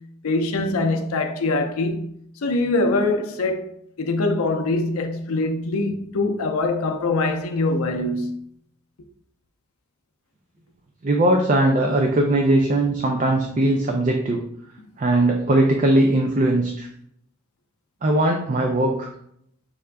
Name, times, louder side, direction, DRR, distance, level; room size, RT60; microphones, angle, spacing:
voice 1, 0.0-2.2 2.4-3.7 4.0-8.4, left 2 dB, 80° left, 0.5 m, -23 dB
voice 2, 11.0-14.4 15.0-16.9 18.0-19.1, right 1 dB, 35° right, 0.4 m, -19 dB
5.5 x 2.4 x 3.3 m
head